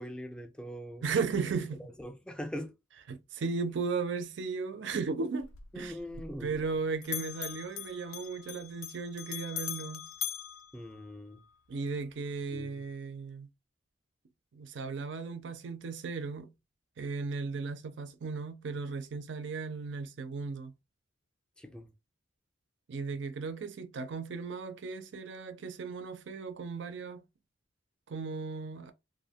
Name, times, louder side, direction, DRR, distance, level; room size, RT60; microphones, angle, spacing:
voice 1, 0.0-1.1 1.8-2.7 5.7-6.6 10.7-11.4 12.5-12.8 21.6-21.9, equal, 5° left, 0.4 m, -42 dB
voice 2, 1.0-1.8 3.1-5.9 6.4-10.1 11.7-13.5 14.5-16.5 17.0-20.7 22.9-27.2 28.1-28.9, right 4 dB, 65° right, 0.4 m, -36 dB
Bell, 5.4-6.8 7.0-11.5, left 12 dB, 85° left, 0.4 m, -41 dB
2.6 x 2.1 x 2.7 m
head